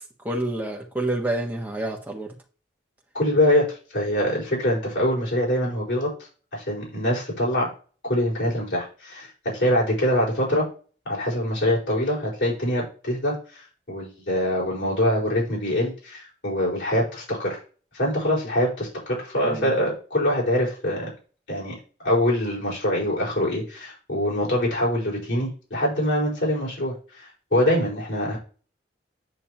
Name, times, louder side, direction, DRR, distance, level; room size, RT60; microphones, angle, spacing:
voice 1, 0.2-2.3 19.4-19.7, right 1 dB, 10° right, 1.3 m, -28 dB
voice 2, 3.1-6.1 6.5-7.7 8.0-9.3 9.5-10.7 11.0-17.6 17.9-21.1 21.5-21.7 22.0-28.4, left 1 dB, 70° left, 4.6 m, -24 dB
9.0 x 5.9 x 2.9 m
head